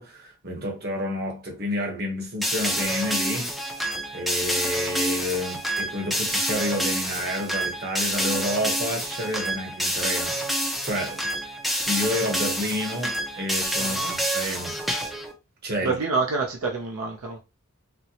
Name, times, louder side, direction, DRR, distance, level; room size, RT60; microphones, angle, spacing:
voice 1, 0.0-3.5 4.1-11.2 11.9-14.8 15.6-16.0, left 1 dB, 45° right, 1.0 m, -30 dB
sound 1, 2.4-15.3, equal, ahead, 0.5 m, -28 dB
voice 2, 13.8-14.2 15.8-17.4, right 4 dB, 80° right, 0.6 m, -27 dB
4.2 x 2.1 x 2.8 m
head